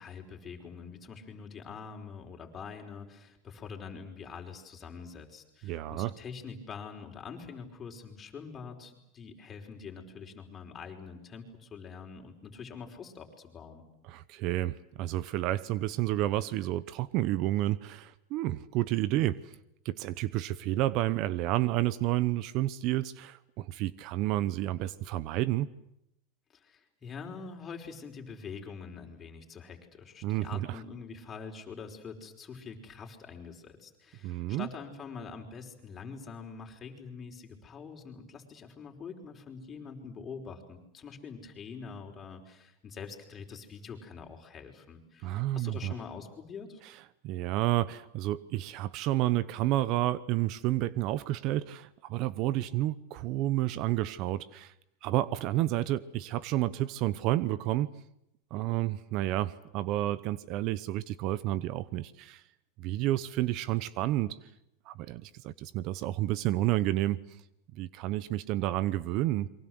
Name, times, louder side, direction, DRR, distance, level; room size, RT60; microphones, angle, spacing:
voice 1, 0.0-13.8 26.5-46.8, left 5 dB, 25° left, 3 dB, 5.0 m, -45 dB
voice 2, 5.6-6.1 14.1-19.5 19.8-25.7 30.2-30.8 34.2-34.7 45.2-46.0 47.2-54.7 55.0-57.9 58.5-62.4 62.8-64.4 64.9-67.2 67.7-69.5, right 15 dB, 55° right, 18 dB, 0.9 m, -30 dB
28.5 x 23.5 x 8.0 m, 0.81 s
supercardioid pair, 125°, 0 cm